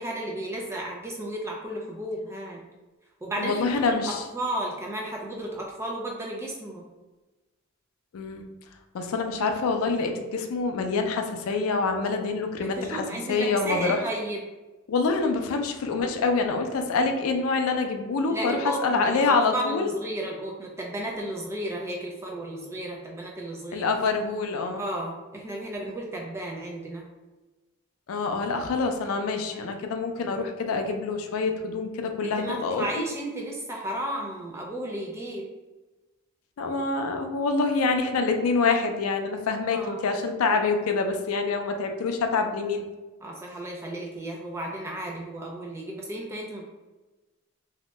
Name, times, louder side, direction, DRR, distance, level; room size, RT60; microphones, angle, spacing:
voice 1, 0.0-2.6 3.2-3.7 4.0-6.8 12.6-14.4 18.3-23.9 24.8-27.0 29.5-29.7 32.2-35.4 39.7-40.0 43.2-46.7, right 1 dB, 10° right, -1 dB, 0.3 m, -33 dB
voice 2, 3.4-4.2 8.1-8.5 8.9-14.0 14.9-19.9 23.7-24.8 28.1-32.8 36.6-42.8, left 4 dB, 80° left, 5 dB, 0.4 m, -26 dB
2.7 x 2.1 x 3.0 m, 1.1 s
head